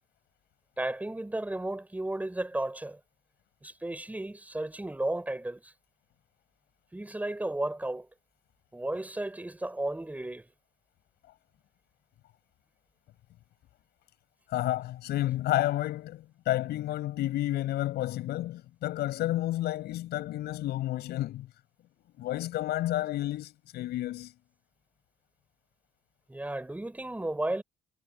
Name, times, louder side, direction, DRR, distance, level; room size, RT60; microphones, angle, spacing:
voice 1, 0.8-3.0 3.6-5.7 6.9-8.1 8.7-10.5 26.3-27.6, right 1 dB, 10° right, 5.5 m, -34 dB
voice 2, 14.5-21.5 22.2-24.3, left 15 dB, 75° left, 7.0 m, -31 dB
cardioid pair, 110°, 17 cm